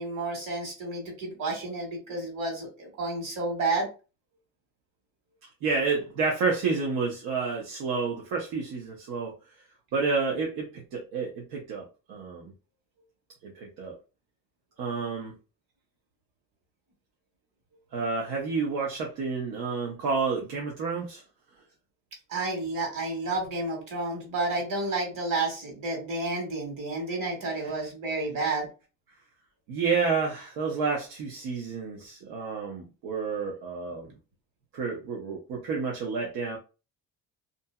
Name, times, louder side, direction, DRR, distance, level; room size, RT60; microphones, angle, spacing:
voice 1, 0.0-3.9 22.3-28.7, right 2 dB, 60° right, 1.5 m, -31 dB
voice 2, 5.6-9.4 9.9-12.5 13.4-14.0 14.8-15.3 17.9-21.2 27.5-27.7 29.7-34.1 34.7-36.6, right 4 dB, 80° right, 0.8 m, -30 dB
2.7 x 2.6 x 2.2 m
cardioid pair, 135°, 37 cm